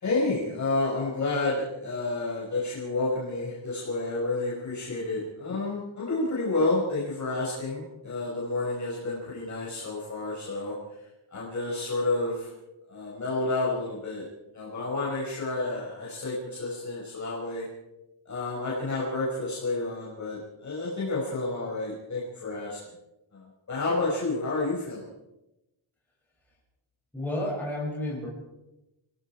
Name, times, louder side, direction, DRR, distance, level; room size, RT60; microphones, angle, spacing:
voice 1, 0.0-10.7 11.3-12.5 12.9-14.2 14.5-17.7 18.3-22.8 23.3-25.0, left 2 dB, 35° left, -6 dB, 5.5 m, -30 dB
voice 2, 27.1-28.3, left 1 dB, 5° left, -6 dB, 7.1 m, -31 dB
29.0 x 19.0 x 4.8 m, 0.95 s
wide cardioid pair, 180°, 47 cm